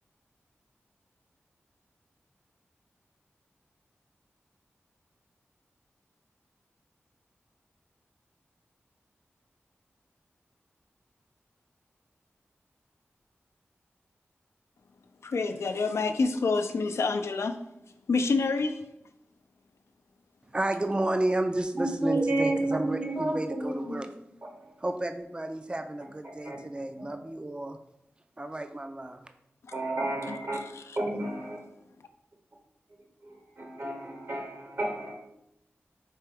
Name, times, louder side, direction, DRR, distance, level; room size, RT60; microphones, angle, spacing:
voice 1, 15.2-17.6 18.1-18.8 30.3-31.0, left 4 dB, 80° left, 8 dB, 0.4 m, -28 dB
voice 2, 20.5-24.1 24.8-27.8 28.4-29.2, right 1 dB, 20° right, 7 dB, 0.4 m, -31 dB
voice 3, 21.8-24.0 26.2-26.8 29.7-30.6 31.0-31.6 33.2-35.1, right 2 dB, 55° right, 1 dB, 0.9 m, -31 dB
4.5 x 3.3 x 3.4 m, 0.82 s
cardioid pair, 45°, 5 cm